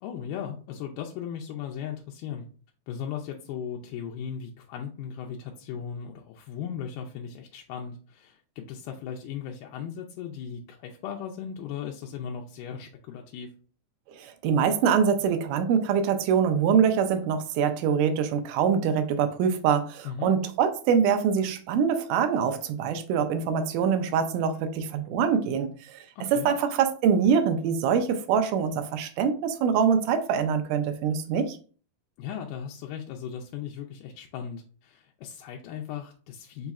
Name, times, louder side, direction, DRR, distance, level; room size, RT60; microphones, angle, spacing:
voice 1, 0.0-2.5 2.9-13.5 20.0-20.3 26.2-26.5 32.2-36.7, left 8 dB, 90° left, 1 dB, 2.1 m, -37 dB
voice 2, 14.1-25.7 26.3-31.6, right 7 dB, 85° right, 8 dB, 2.2 m, -24 dB
5.5 x 2.4 x 4.0 m, 0.41 s
omnidirectional pair, 3.7 m